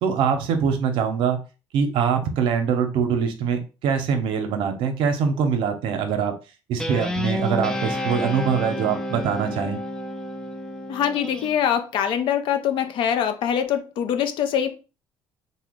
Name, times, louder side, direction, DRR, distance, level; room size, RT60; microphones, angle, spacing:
voice 1, 0.0-1.4 1.7-6.3 6.7-9.8, right 6 dB, 70° right, 6 dB, 0.6 m, -23 dB
Guitar, 6.8-11.5, left 1 dB, 5° left, 0.3 m, -29 dB
voice 2, 10.9-14.8, left 9 dB, 65° left, 8 dB, 0.5 m, -23 dB
2.8 x 2.1 x 3.5 m, 0.32 s
cardioid pair, 120°, 9 cm